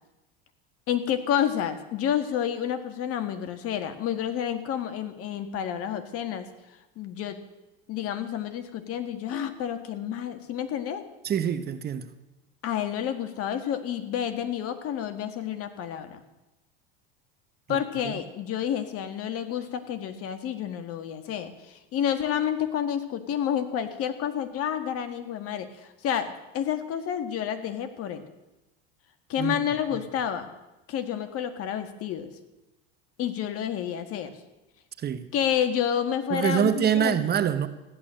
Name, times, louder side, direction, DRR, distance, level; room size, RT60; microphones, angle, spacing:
voice 1, 0.9-6.5 7.0-7.4 7.9-11.1 12.6-16.2 17.7-28.2 29.3-30.5 30.9-32.3 33.2-34.3 35.3-37.3, left 9 dB, 50° left, 1.8 m, -29 dB
voice 2, 11.2-12.1 17.7-17.8 18.0-18.2 29.4-29.6 35.0-35.3 36.3-37.7, right 9 dB, 35° right, 1.1 m, -25 dB
14.5 x 11.0 x 7.6 m
supercardioid pair, 105°, 29 cm